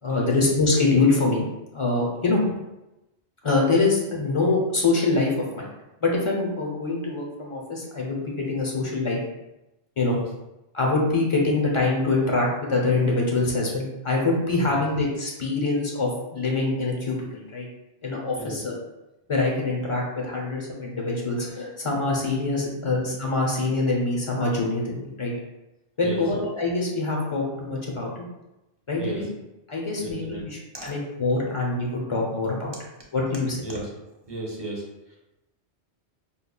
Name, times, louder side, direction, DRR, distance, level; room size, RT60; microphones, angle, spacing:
voice 1, 0.0-1.4 1.7-2.4 3.4-5.7 6.0-9.2 10.0-10.2 10.7-17.7 18.0-18.8 19.3-25.3 26.0-28.2 28.9-29.3 29.7-32.7 33.1-33.6, left 3 dB, 35° left, -2 dB, 0.7 m, -24 dB
voice 2, 29.0-29.3 30.0-30.5 30.7-30.9 33.6-33.9 34.2-35.2, right 1 dB, 30° right, -2 dB, 0.6 m, -35 dB
5.3 x 2.3 x 2.2 m, 0.97 s
omnidirectional pair, 1.1 m